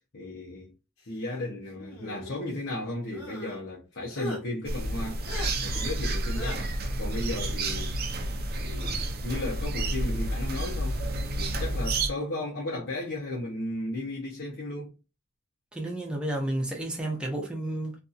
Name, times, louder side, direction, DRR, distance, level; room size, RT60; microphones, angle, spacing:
voice 1, 0.1-0.7 1.1-5.2 5.6-6.7 7.0-8.0 8.5-11.0 11.3-14.9, left 1 dB, 55° left, 0.8 m, -35 dB
sound 1, 1.7-2.5 3.1-3.6 4.1-4.4 5.2-5.5 6.3-6.6, left 1 dB, 85° left, 1.3 m, -39 dB
sound 2, 4.7-12.1, right 1 dB, 45° right, 0.5 m, -30 dB
voice 2, 15.7-18.0, right 1 dB, 5° right, 0.6 m, -31 dB
2.7 x 2.6 x 2.4 m
head